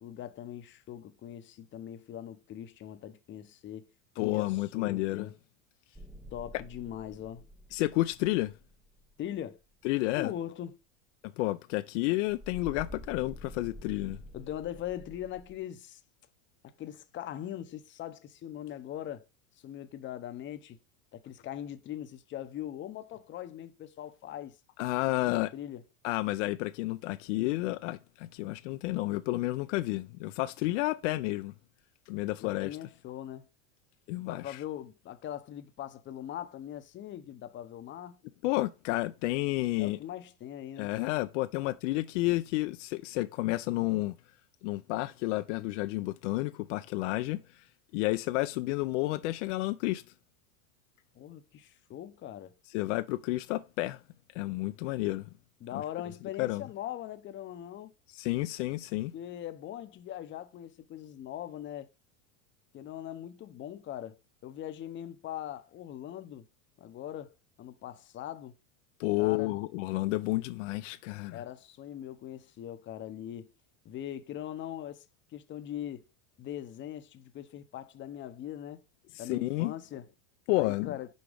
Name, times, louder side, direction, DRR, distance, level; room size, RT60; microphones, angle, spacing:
voice 1, 0.0-3.8 4.2-5.3 6.3-7.4 9.2-9.6 10.2-10.8 14.3-16.0 16.8-19.2 19.6-20.8 21.1-24.6 25.0-25.8 32.4-33.5 34.1-38.2 39.8-40.9 51.2-52.5 55.6-57.9 59.1-61.9 62.7-66.5 66.8-67.3 67.6-68.6 69.2-69.5 71.3-73.5 73.8-75.0 75.3-76.1 76.4-78.8 79.2-80.1 80.6-81.1, left 11 dB, 30° left, 0.7 m, -41 dB
voice 2, 4.2-5.3 7.7-8.5 9.8-10.3 11.4-14.2 24.8-25.5 26.0-31.5 32.1-32.8 34.1-34.6 38.4-40.0 40.8-44.2 44.6-47.4 47.9-50.0 52.7-54.0 54.3-55.2 56.4-56.6 58.2-59.1 69.0-71.4 79.3-79.7 80.5-80.9, left 19 dB, 70° left, 0.6 m, -31 dB
sound 1, 5.9-9.5 12.3-15.6, equal, 5° right, 0.5 m, -48 dB
6.3 x 4.6 x 3.4 m
supercardioid pair, 115°, 38 cm